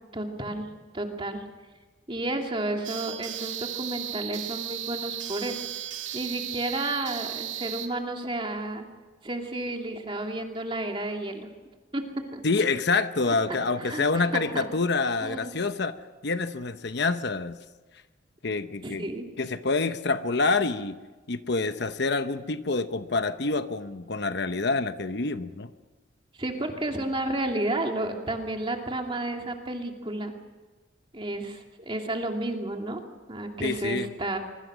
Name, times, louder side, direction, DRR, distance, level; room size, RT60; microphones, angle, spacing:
voice 1, 0.1-0.7 0.9-1.4 2.1-8.9 9.2-11.5 11.9-12.0 12.3-12.4 13.3-14.0 14.5-14.6 15.2-15.5 18.8-19.3 26.3-30.3 31.1-33.0 33.3-34.4, right 1 dB, 25° right, 3 dB, 2.7 m, -32 dB
sound 1, 2.8-7.9, right 11 dB, 75° right, 2.3 m, -35 dB
voice 2, 12.4-16.0 16.2-17.6 18.4-19.1 19.4-21.0 21.3-25.7 33.6-34.1, left 3 dB, 55° left, 10 dB, 0.9 m, -27 dB
25.0 x 23.5 x 6.3 m, 1.3 s
head